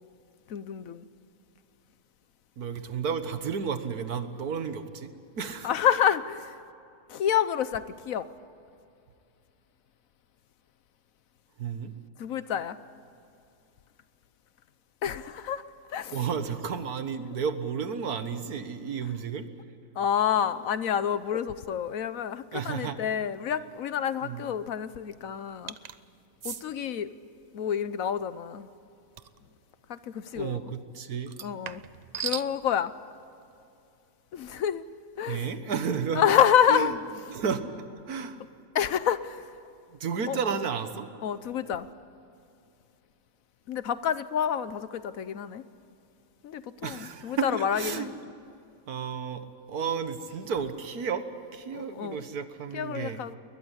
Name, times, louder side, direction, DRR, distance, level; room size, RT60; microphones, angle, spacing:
voice 1, 0.5-1.0 5.6-6.5 7.1-8.3 12.2-12.8 15.0-15.6 15.9-16.2 20.0-25.7 26.4-27.1 27.5-28.7 29.9-30.6 31.4-31.8 32.2-32.9 34.3-34.8 35.2-35.5 36.1-36.9 38.7-39.4 40.3-40.4 41.2-41.9 43.7-45.6 46.4-48.1 51.7-52.2 52.7-53.4, left 9 dB, 65° left, 14 dB, 1.2 m, -28 dB
voice 2, 2.6-5.7 11.6-11.9 16.1-19.5 22.5-23.0 24.2-24.4 30.3-31.3 35.3-36.2 36.7-37.0 37.3-37.7 38.1-38.4 39.9-41.1 46.8-48.1 48.9-53.2, right 6 dB, 75° right, 10 dB, 1.8 m, -32 dB
sound 1, 25.7-26.0 26.4-26.6 29.2-29.4 31.3-32.5, right 7 dB, 60° right, 0.4 m, -36 dB
21.5 x 20.0 x 9.9 m, 2.6 s
omnidirectional pair, 1.6 m